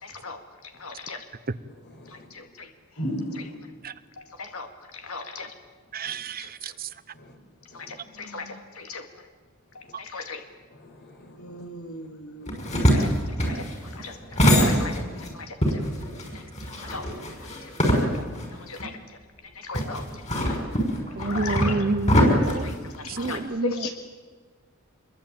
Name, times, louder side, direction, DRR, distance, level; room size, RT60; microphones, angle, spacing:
voice 1, 0.0-1.2 2.1-2.7 4.2-5.5 6.4-6.8 7.7-9.1 9.7-10.4 11.2-12.5 12.9-13.1 13.4-15.8 16.3-17.1 17.4-17.7 18.2-18.3 18.6-19.2 19.5-20.6 21.1-21.8 22.6-23.9, left 3 dB, 80° left, 6 dB, 2.2 m, -38 dB
voice 2, 3.0-3.6 6.1-6.2 7.1-7.3 7.7-8.0 10.8-11.6 12.4-13.0 23.8-23.9, left 1 dB, 55° left, 4 dB, 5.3 m, -36 dB
voice 3, 5.9-6.9 21.2-22.7 23.0-23.9, right 3 dB, 45° right, 14 dB, 0.9 m, -29 dB
sound 1, 12.5-15.3 15.6-18.5 18.8-18.9 19.7-23.4, equal, 35° left, 6.2 m, -23 dB
26.0 x 22.5 x 8.8 m, 1.5 s
head